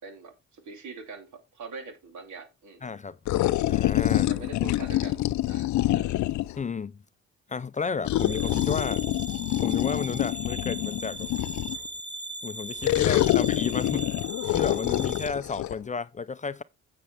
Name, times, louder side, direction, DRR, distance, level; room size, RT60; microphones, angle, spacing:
voice 1, 0.0-2.8 4.1-6.1 13.0-13.4, right 4 dB, 70° right, 3.0 m, -43 dB
voice 2, 2.8-3.2 3.7-4.3 6.6-7.0 7.5-9.0 9.6-11.3 12.4-14.1 14.5-16.6, left 5 dB, 25° left, 0.5 m, -32 dB
sound 1, 3.3-6.6 8.0-11.9 12.8-15.8, left 15 dB, 70° left, 0.6 m, -26 dB
sound 2, 8.1-15.3, right 1 dB, 5° left, 1.4 m, -38 dB
9.7 x 7.9 x 3.4 m
cardioid pair, 90°, 30 cm